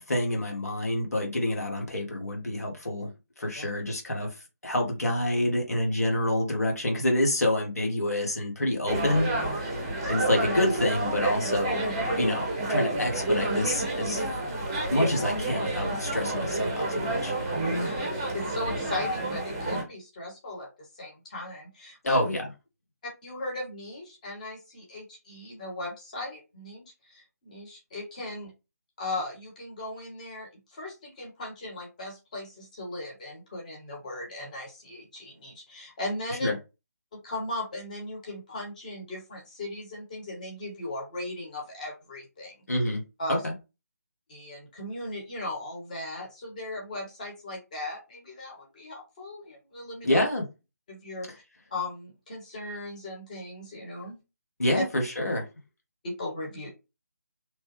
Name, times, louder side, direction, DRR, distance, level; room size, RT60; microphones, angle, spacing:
voice 1, 0.1-3.1 3.4-9.8 10.1-11.8 12.2-14.3 14.9-17.3 22.0-22.4 36.4-36.5 42.7-43.0 43.4-43.5 50.0-50.4 54.6-55.5, left 1 dB, 60° left, 1.1 m, -27 dB
sound 1, 8.9-19.8, right 2 dB, 20° right, 0.7 m, -29 dB
voice 2, 17.8-22.2 23.2-28.5 29.0-36.5 37.2-42.6 43.2-43.4 44.3-50.2 50.9-51.3 51.7-54.2 54.7-54.8 56.0-56.7, left 1 dB, 25° left, 1.2 m, -37 dB
3.1 x 2.2 x 3.1 m
figure-of-eight pair, 155°, 9 cm